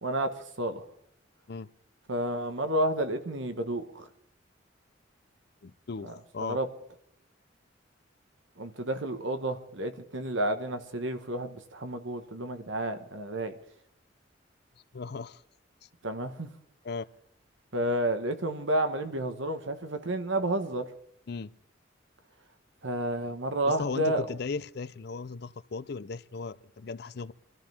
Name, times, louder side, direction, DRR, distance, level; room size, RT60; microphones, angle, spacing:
voice 1, 0.0-0.8 2.1-4.1 6.0-6.7 8.6-13.6 16.0-16.5 17.7-20.9 22.8-24.2, right 1 dB, 85° right, 1.6 m, -31 dB
voice 2, 5.6-6.6 14.9-15.4 16.8-17.0 21.3-21.5 23.6-27.3, left 4 dB, 55° left, 0.5 m, -37 dB
24.0 x 13.0 x 3.6 m
head